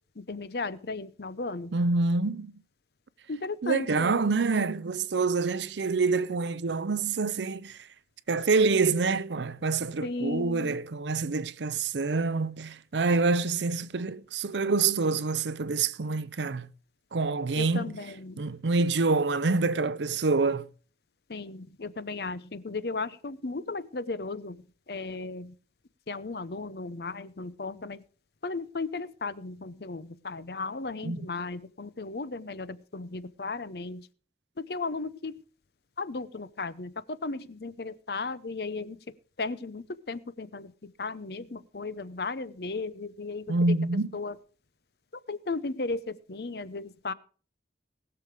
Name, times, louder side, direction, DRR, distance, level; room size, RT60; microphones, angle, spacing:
voice 1, 0.2-1.7 3.3-4.2 10.0-10.7 17.6-18.4 21.3-25.5 26.1-28.0 28.4-34.1 34.6-35.4 36.0-39.0 39.4-43.7 44.1-44.4 45.3-47.1, left 3 dB, 60° left, 0.7 m, -35 dB
voice 2, 1.7-2.5 3.6-7.8 8.3-16.7 17.1-17.8 18.4-20.7 31.0-31.2 43.5-44.1, right 4 dB, 85° right, 0.6 m, -26 dB
20.0 x 6.9 x 4.9 m
head